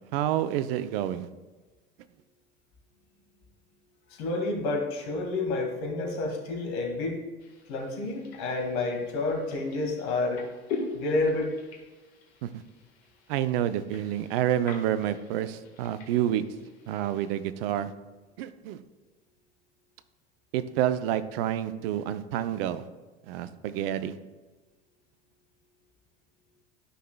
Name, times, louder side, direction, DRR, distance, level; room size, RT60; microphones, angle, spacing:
voice 1, 0.1-1.3 12.4-12.5 13.3-16.4 16.9-17.9 18.4-18.8 20.5-22.8 23.2-24.1, right 11 dB, 60° right, 13 dB, 0.6 m, -28 dB
voice 2, 4.1-7.2 7.7-10.4 10.9-11.5, left 2 dB, 55° left, 1 dB, 2.0 m, -29 dB
sound 1, 7.4-17.3, left 4 dB, 75° left, 1.6 m, -43 dB
12.5 x 5.7 x 2.3 m, 1.2 s
hypercardioid pair, 75°, 32 cm